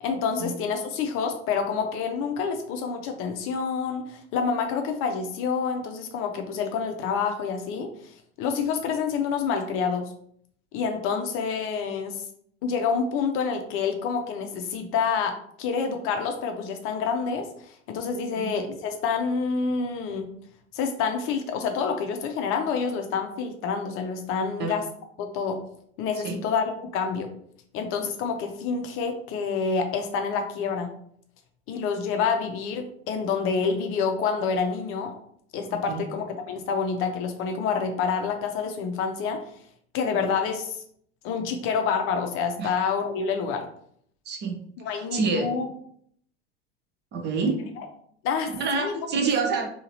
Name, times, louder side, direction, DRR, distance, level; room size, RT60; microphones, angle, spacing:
voice 1, 0.0-7.9 8.4-10.0 10.7-12.2 12.6-20.3 20.7-24.8 25.2-25.6 26.0-27.3 27.7-30.9 31.7-35.1 35.5-39.4 39.9-40.8 41.2-43.7 44.8-45.7 48.2-48.9, left 5 dB, 40° left, 5 dB, 0.6 m, -28 dB
voice 2, 44.3-44.6 44.9-45.5 47.1-47.6 48.6-49.7, right 4 dB, 30° right, 3 dB, 0.7 m, -27 dB
3.8 x 2.8 x 2.8 m, 0.65 s
figure-of-eight pair, 80°, 34 cm